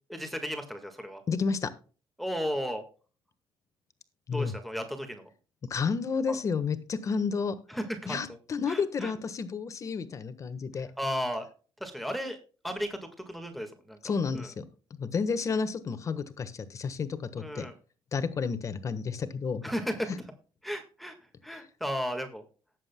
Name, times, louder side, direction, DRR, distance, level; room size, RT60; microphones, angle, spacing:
voice 1, 0.1-1.2 2.2-2.8 4.3-5.3 6.3-6.4 7.7-8.2 8.7-9.1 10.8-11.4 11.8-12.4 12.6-14.5 17.4-17.7 19.6-20.2 20.6-21.1 21.4-22.4, equal, ahead, 5 dB, 1.6 m, -34 dB
voice 2, 1.3-1.7 4.3-4.5 5.7-7.5 8.1-10.9 14.0-14.6 15.0-17.7 18.1-19.6, left 5 dB, 35° left, 12 dB, 1.3 m, -31 dB
19.0 x 7.6 x 2.2 m, 0.37 s
cardioid pair, 135°, 9 cm